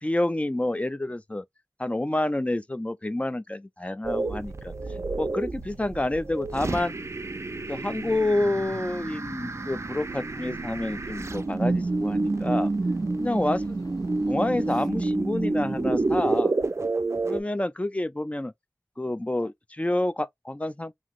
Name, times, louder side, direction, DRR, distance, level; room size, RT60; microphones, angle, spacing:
voice 1, 0.0-1.4 1.8-4.7 5.2-6.9 7.7-12.7 13.2-13.6 14.3-16.5 17.2-18.5 19.0-20.9, left 1 dB, 20° left, 0.4 m, -28 dB
sound 1, 4.0-17.4, right 3 dB, 45° right, 0.4 m, -29 dB
sound 2, 9.2-14.9, left 3 dB, 80° left, 0.7 m, -51 dB
2.9 x 2.7 x 2.4 m
wide cardioid pair, 65°, 7 cm